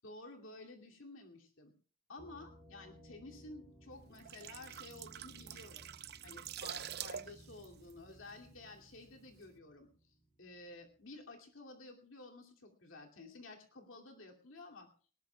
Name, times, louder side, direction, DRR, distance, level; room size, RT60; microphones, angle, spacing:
voice 1, 0.0-1.7 2.1-5.9 6.2-14.9, left 2 dB, 70° left, 2 dB, 2.6 m, -53 dB
sound 1, 2.2-10.9, right 1 dB, 5° left, 2.9 m, -60 dB
sound 2, 4.0-8.8 9.1-9.4, right 9 dB, 50° right, 0.7 m, -46 dB
19.0 x 19.0 x 2.3 m, 0.41 s
head